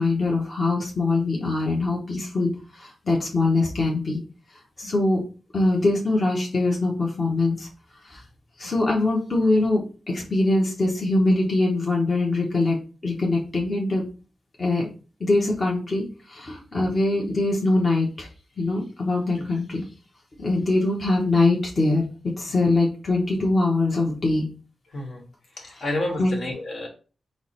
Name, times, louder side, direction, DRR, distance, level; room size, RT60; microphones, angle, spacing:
voice 1, 0.0-4.2 4.8-5.2 5.5-7.7 8.0-8.2 8.6-12.8 13.0-14.0 14.6-14.9 15.2-18.3 18.6-19.8 20.4-24.5 26.2-26.4, left 2 dB, 35° left, -2 dB, 0.9 m, -23 dB
voice 2, 24.9-25.2 25.6-26.9, left 1 dB, 70° left, 0 dB, 1.4 m, -30 dB
4.5 x 2.1 x 4.2 m, 0.36 s
wide cardioid pair, 105°, 0 cm